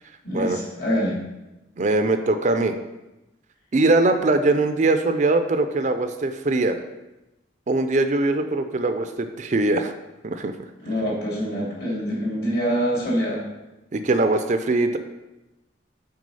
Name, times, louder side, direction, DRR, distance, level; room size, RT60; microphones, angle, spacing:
voice 1, 0.2-1.2 10.8-13.4, equal, 55° left, -4 dB, 2.6 m, -25 dB
voice 2, 1.8-2.7 3.7-6.8 7.7-9.9 10.2-10.5 13.9-15.0, right 2 dB, 40° right, 8 dB, 0.4 m, -21 dB
6.2 x 4.7 x 5.4 m, 1.0 s
head